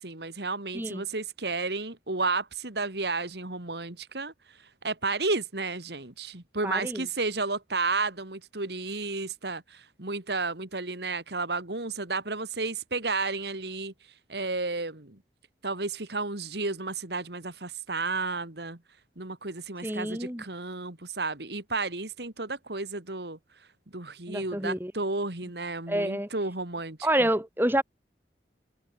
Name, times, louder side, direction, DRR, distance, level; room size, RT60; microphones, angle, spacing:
voice 1, 0.0-13.9 14.3-15.2 15.6-18.8 19.2-23.4 23.9-27.3, right 3 dB, 75° right, 2.6 m, -32 dB
voice 2, 6.6-7.0 19.8-20.4 24.3-24.9 25.9-26.3 27.0-27.8, right 1 dB, 10° right, 5.7 m, -28 dB
head